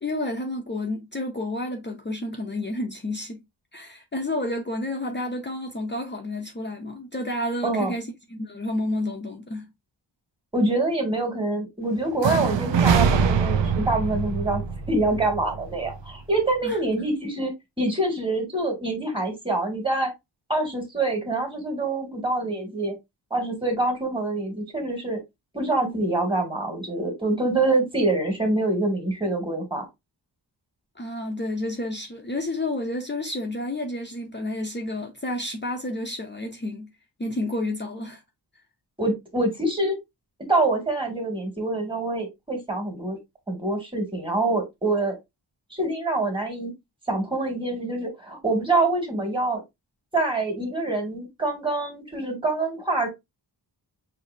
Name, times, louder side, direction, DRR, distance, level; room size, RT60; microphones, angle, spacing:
voice 1, 0.0-3.4 3.7-9.7 16.6-16.8 31.0-36.9 37.2-38.2, left 1 dB, 25° left, 0.7 m, -30 dB
voice 2, 10.5-14.6 14.9-17.5 17.8-20.1 20.5-22.9 23.3-25.2 25.5-29.9 39.0-39.9 40.5-43.2 43.5-45.2 45.7-46.7 47.1-49.6 50.1-53.1, right 2 dB, 10° right, 1.9 m, -25 dB
sound 1, 12.2-16.1, right 6 dB, 80° right, 0.7 m, -23 dB
6.3 x 2.8 x 2.7 m
wide cardioid pair, 145°, 43 cm